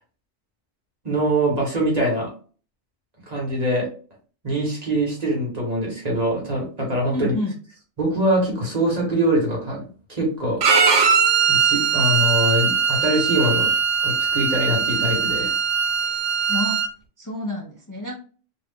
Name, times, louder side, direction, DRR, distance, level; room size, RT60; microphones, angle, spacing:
voice 1, 1.0-2.3 3.3-3.9 4.4-7.3 8.0-10.6 11.5-13.7 14.0-15.5, right 1 dB, 35° right, -2 dB, 1.2 m, -23 dB
voice 2, 7.1-7.6 16.5-16.8 17.2-18.1, left 1 dB, 25° left, -3 dB, 0.5 m, -28 dB
Bowed string instrument, 10.6-16.9, right 6 dB, 80° right, 1.0 m, -20 dB
2.7 x 2.4 x 3.5 m, 0.40 s
omnidirectional pair, 1.2 m